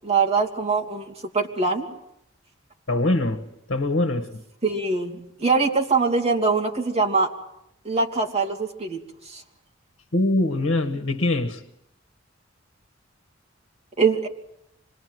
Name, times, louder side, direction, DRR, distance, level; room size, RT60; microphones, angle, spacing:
voice 1, 0.0-1.9 4.6-7.3 7.8-9.4 14.0-14.3, right 4 dB, 35° right, 2 dB, 2.9 m, -23 dB
voice 2, 2.9-4.4 10.1-11.6, left 2 dB, 75° left, 9 dB, 1.5 m, -23 dB
26.0 x 21.0 x 7.9 m, 0.82 s
head